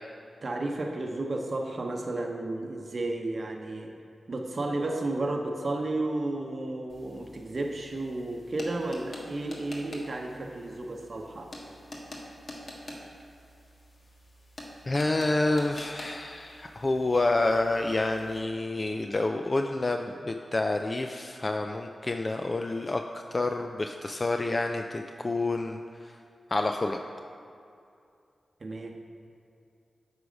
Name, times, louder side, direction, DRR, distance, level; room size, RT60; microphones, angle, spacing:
voice 1, 0.4-3.9 4.3-11.5 28.6-29.0, right 2 dB, 55° right, 2 dB, 0.8 m, -32 dB
sound 1, 6.9-18.4, left 1 dB, 60° left, 1.4 m, -46 dB
voice 2, 14.9-26.1 26.5-27.0, left 2 dB, 40° left, 5 dB, 0.4 m, -28 dB
8.2 x 4.8 x 5.2 m, 2.5 s
cardioid pair, 45°, 0 cm